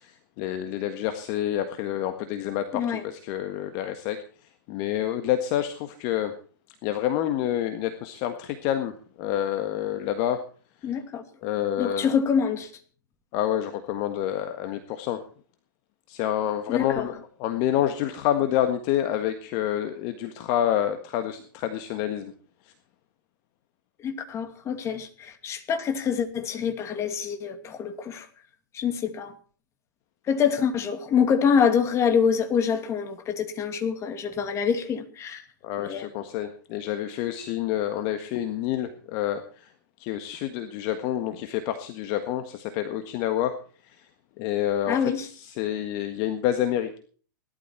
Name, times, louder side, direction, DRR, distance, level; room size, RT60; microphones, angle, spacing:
voice 1, 0.0-4.2 4.7-6.3 6.8-10.4 11.4-12.1 13.3-15.2 16.1-22.3 22.6-22.7 35.6-39.7 40.0-43.6 43.8-44.1 44.4-47.0, left 11 dB, 40° left, 9 dB, 1.6 m, -28 dB
voice 2, 2.7-3.0 10.8-11.2 11.8-12.7 16.7-17.1 24.0-28.3 28.7-29.3 30.3-35.4 35.8-36.1 44.9-45.3, left 7 dB, 25° left, 8 dB, 2.6 m, -26 dB
18.5 x 12.0 x 4.5 m, 0.42 s
hypercardioid pair, 115°, 11 cm